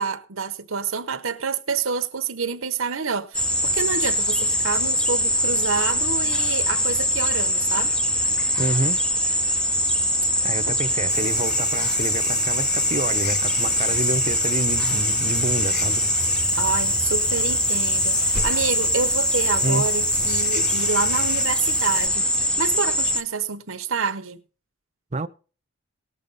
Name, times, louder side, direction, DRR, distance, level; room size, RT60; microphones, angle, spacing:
voice 1, 0.0-7.9 16.6-24.4, right 5 dB, 70° right, 1.0 m, -28 dB
sound 1, 3.3-23.2, equal, 5° left, 0.5 m, -22 dB
voice 2, 8.6-9.0 10.4-16.0 19.6-19.9 25.1-25.3, right 2 dB, 30° right, 0.7 m, -28 dB
sound 2, 11.1-22.1, left 5 dB, 45° left, 3.8 m, -35 dB
18.5 x 6.8 x 4.0 m
head